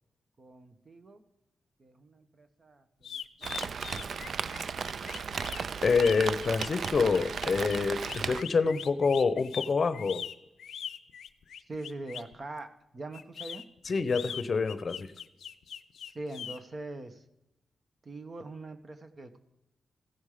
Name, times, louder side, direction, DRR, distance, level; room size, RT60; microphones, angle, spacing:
voice 1, 0.4-1.2 1.8-4.1 11.7-12.7 12.9-13.6 16.1-17.2 18.0-19.4, right 2 dB, 40° right, 8 dB, 1.1 m, -43 dB
sound 1, 3.0-12.3 13.1-16.6, left 8 dB, 90° left, 0.5 m, -42 dB
Rain, 3.4-8.4, right 6 dB, 65° right, 0.4 m, -35 dB
voice 2, 5.8-10.2 13.9-15.1, left 4 dB, 45° left, 12 dB, 0.7 m, -27 dB
15.5 x 5.4 x 4.9 m, 0.91 s
cardioid pair, 90°, 0 cm